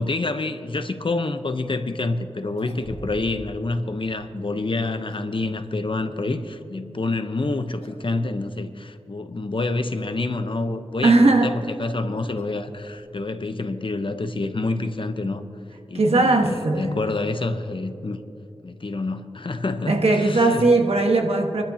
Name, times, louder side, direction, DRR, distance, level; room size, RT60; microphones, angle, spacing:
voice 1, 0.0-15.4 15.9-18.2 18.6-20.7, left 2 dB, 55° left, 9 dB, 0.9 m, -27 dB
sound 1, 2.3-3.4 3.7-3.8 4.7-5.4 7.2-7.5 7.8-8.1 8.4-8.5 9.3-9.4 11.2-13.3, left 1 dB, 80° left, 2.2 m, -45 dB
voice 2, 11.0-11.6 15.9-17.0 19.9-21.6, right 2 dB, 75° right, 3 dB, 1.4 m, -18 dB
27.0 x 12.0 x 2.9 m, 2.8 s
wide cardioid pair, 55°, 10 cm